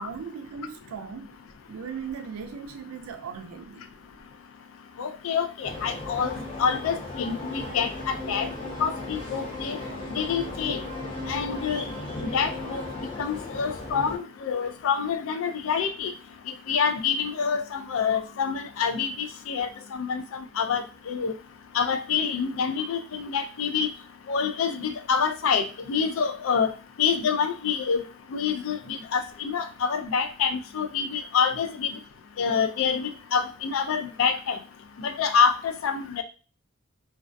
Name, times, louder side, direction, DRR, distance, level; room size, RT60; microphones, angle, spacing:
voice 1, 0.0-1.4 1.7-3.9 31.5-31.6, right 6 dB, 85° right, 0.4 m, -38 dB
voice 2, 5.0-8.5 8.8-9.8 10.1-10.8 11.3-12.8 13.2-16.1 16.7-21.3 21.7-23.9 24.3-26.7 27.0-28.0 28.3-31.9 32.4-34.6 35.0-36.2, left 6 dB, 70° left, 0.3 m, -27 dB
sound 1, 5.6-14.2, left 2 dB, 25° left, 0.8 m, -36 dB
2.3 x 2.2 x 2.5 m
head